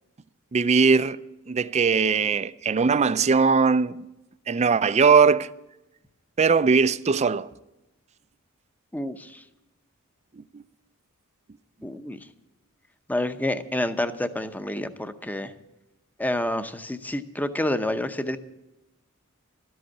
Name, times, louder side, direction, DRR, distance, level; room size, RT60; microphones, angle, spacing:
voice 1, 0.5-1.2 1.5-4.0 4.5-5.5 6.4-7.5 10.4-10.6, right 5 dB, 30° right, 0.4 m, -20 dB
voice 2, 8.9-9.4 11.8-12.2 13.1-15.5 16.2-18.4, left 1 dB, 10° left, 0.7 m, -28 dB
13.0 x 7.9 x 9.7 m
head